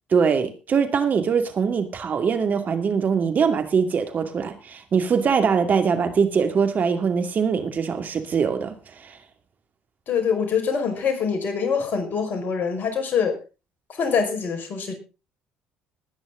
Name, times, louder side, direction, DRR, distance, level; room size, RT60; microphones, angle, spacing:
voice 1, 0.1-9.2, right 6 dB, 45° right, 2.3 m, -22 dB
voice 2, 10.1-13.4 13.9-14.9, left 6 dB, 50° left, 5.2 m, -24 dB
20.0 x 9.5 x 3.8 m
hypercardioid pair, 60°, 4 cm